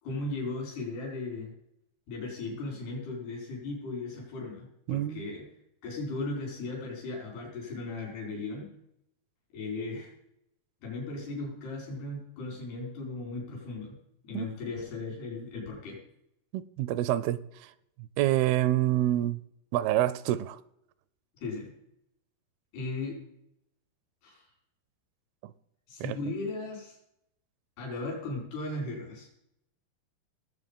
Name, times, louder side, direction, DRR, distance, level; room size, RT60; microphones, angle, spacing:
voice 1, 0.0-1.5 2.1-5.4 5.8-8.7 9.5-10.1 10.8-14.0 14.2-16.0 21.4-21.7 22.7-23.2 24.2-24.5 25.9-27.0 27.8-29.3, left 3 dB, 90° left, 7.0 m, -37 dB
voice 2, 4.9-5.3 14.3-14.5 16.5-17.7 18.2-19.4 19.7-20.6 25.4-25.5 26.0-26.2, right 13 dB, 80° right, 2.4 m, -27 dB
19.0 x 8.0 x 5.4 m
omnidirectional pair, 4.6 m